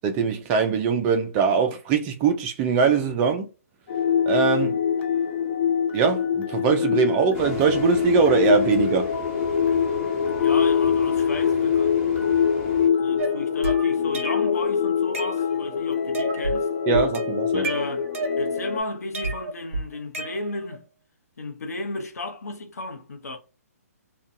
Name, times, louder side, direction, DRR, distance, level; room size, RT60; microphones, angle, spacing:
voice 1, 0.0-3.5 4.3-4.8 5.9-9.1 16.9-17.6, right 6 dB, 20° right, 0.3 m, -22 dB
sound 1, 3.9-18.8, left 7 dB, 45° left, 0.6 m, -24 dB
sound 2, 7.3-12.9, left 1 dB, 20° left, 1.2 m, -37 dB
voice 2, 10.3-12.5 13.0-16.7 17.5-18.1 18.4-20.8 21.4-23.4, left 2 dB, 80° left, 0.8 m, -34 dB
sound 3, 13.2-14.6 14.9-15.8 16.1-16.6 16.9-18.7 19.1-20.8, right 3 dB, 55° right, 0.8 m, -32 dB
2.7 x 2.2 x 2.5 m
hypercardioid pair, 155°, 8 cm